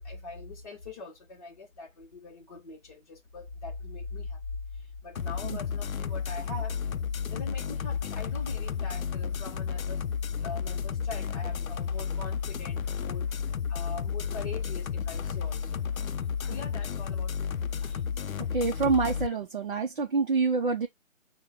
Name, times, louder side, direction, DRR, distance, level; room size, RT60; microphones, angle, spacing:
voice 1, 0.0-6.8 7.2-10.0 10.4-15.9 16.1-18.3, left 3 dB, 30° left, 0.9 m, -42 dB
sound 1, 5.2-19.3, left 7 dB, 85° left, 0.5 m, -32 dB
voice 2, 18.4-20.9, right 4 dB, 40° right, 0.6 m, -27 dB
5.5 x 2.2 x 3.5 m
figure-of-eight pair, 145°, 40 cm